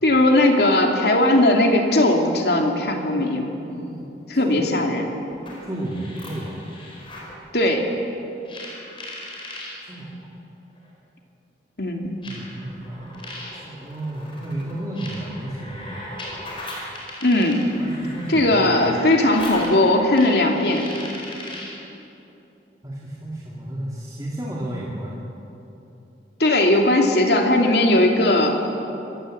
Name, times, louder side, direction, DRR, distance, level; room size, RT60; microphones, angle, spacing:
voice 1, 0.0-3.5 4.3-5.1 7.5-7.9 11.8-12.2 17.2-17.6 18.3-20.9 26.4-28.6, left 1 dB, 70° left, 2 dB, 2.5 m, -18 dB
voice 2, 3.6-4.7 5.6-6.6 9.8-10.3 12.3-13.2 13.5-16.1 17.8-18.7 22.8-25.2, right 1 dB, 20° right, -5 dB, 2.5 m, -33 dB
sound 1, 5.3-7.3 8.5-9.7 10.8-10.9 12.2-21.8, left 1 dB, 30° left, 4.5 m, -38 dB
26.0 x 15.5 x 7.7 m, 2.9 s
head